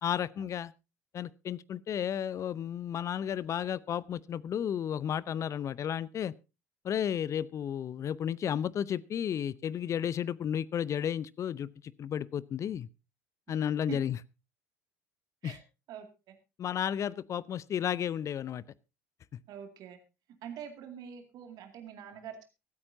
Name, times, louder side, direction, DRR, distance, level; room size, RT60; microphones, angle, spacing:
voice 1, 0.0-0.7 1.1-6.3 6.8-12.9 13.5-14.2 15.4-15.6 16.6-18.6, left 9 dB, 40° left, 21 dB, 0.6 m, -33 dB
voice 2, 19.5-20.0 20.4-22.4, right 9 dB, 50° right, 6 dB, 2.3 m, -44 dB
24.5 x 8.8 x 2.7 m, 0.28 s
figure-of-eight pair, 65°, 8 cm